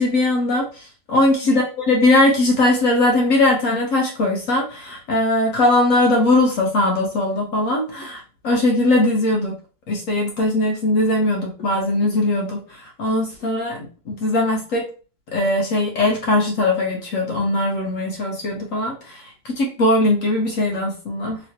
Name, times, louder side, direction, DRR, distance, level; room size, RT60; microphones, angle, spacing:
voice 1, 0.0-0.9 1.1-9.5 9.9-14.8 15.3-21.4, left 2 dB, 60° left, 0 dB, 0.9 m, -20 dB
3.1 x 2.9 x 2.7 m, 0.37 s
omnidirectional pair, 1.8 m